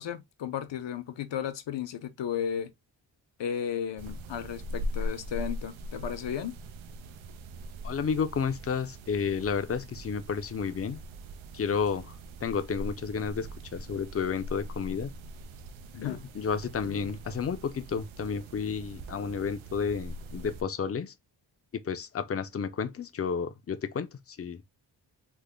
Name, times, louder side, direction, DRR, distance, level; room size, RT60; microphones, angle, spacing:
voice 1, 0.0-2.7 3.4-6.5 15.9-16.2, left 9 dB, 70° left, 0.7 m, -34 dB
sound 1, 4.0-20.6, equal, 85° right, 0.6 m, -41 dB
voice 2, 7.8-11.0 11.5-12.1 12.4-15.1 16.0-21.1 21.7-24.6, left 6 dB, 30° left, 0.5 m, -31 dB
3.3 x 2.1 x 3.6 m
wide cardioid pair, 100°, 46 cm